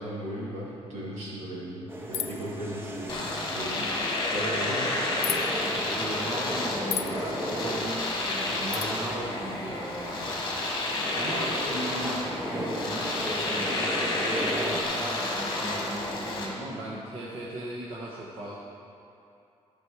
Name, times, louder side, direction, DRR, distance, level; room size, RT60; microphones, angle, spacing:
voice 1, 0.0-3.2 3.5-3.9 4.2-5.0 11.3-11.5 12.0-12.1, equal, 75° right, -5 dB, 2.4 m, -36 dB
sound 1, 1.9-14.8, right 1 dB, 20° right, 0.7 m, -37 dB
sound 2, 2.1-2.5 5.2-5.4 6.9-7.2 8.7-8.9, left 9 dB, 65° left, 0.4 m, -31 dB
Domestic sounds home sounds, 3.1-16.5, left 2 dB, 40° left, 1.5 m, -30 dB
voice 2, 3.7-4.1 5.5-10.3 11.1-18.5, right 1 dB, 55° right, -6 dB, 1.1 m, -37 dB
13.0 x 5.2 x 4.7 m, 2.7 s
cardioid pair, 165°, 11 cm